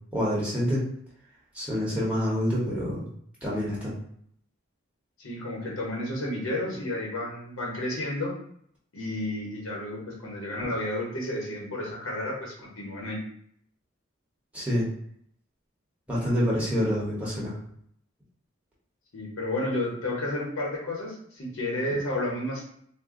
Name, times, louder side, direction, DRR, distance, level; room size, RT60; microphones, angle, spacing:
voice 1, 0.1-0.8 1.5-3.1 3.4-3.9 14.5-14.8 16.1-17.5, equal, 5° right, -8 dB, 1.0 m, -27 dB
voice 2, 5.2-8.3 8.9-13.2 19.1-22.6, left 1 dB, 90° left, -3 dB, 1.0 m, -31 dB
2.6 x 2.2 x 3.7 m, 0.67 s
head